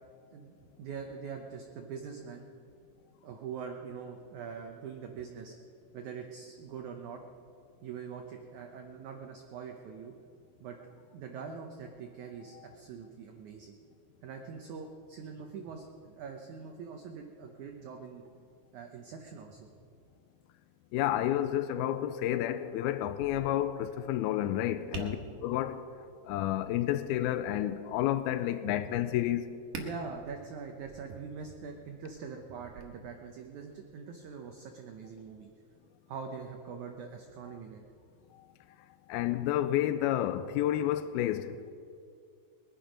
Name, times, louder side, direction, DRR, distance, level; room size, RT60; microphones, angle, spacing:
voice 1, 0.3-2.4 3.2-5.5 5.9-7.2 7.8-10.1 10.6-10.8 11.1-13.8 14.2-18.4 18.7-19.7 24.9-25.1 28.7-28.8 29.8-35.5 36.1-37.8, right 6 dB, 85° right, 1.7 m, -43 dB
voice 2, 20.9-25.2 25.4-25.8 26.3-29.5 39.1-41.7, left 12 dB, 80° left, 2.3 m, -30 dB
Tap, 23.1-32.8, right 3 dB, 60° right, 2.7 m, -49 dB
21.5 x 10.5 x 5.2 m
omnidirectional pair, 4.7 m